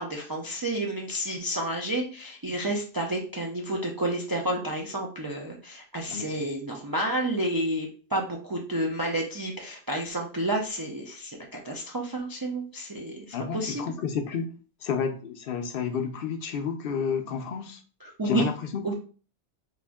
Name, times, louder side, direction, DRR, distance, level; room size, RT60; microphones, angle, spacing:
voice 1, 0.0-13.8 18.0-18.4 18.8-18.9, right 1 dB, 35° right, 0 dB, 0.3 m, -30 dB
voice 2, 13.3-14.5 14.8-17.8 18.2-18.9, left 6 dB, 65° left, 6 dB, 0.7 m, -30 dB
3.4 x 2.5 x 3.5 m, 0.40 s
omnidirectional pair, 1.1 m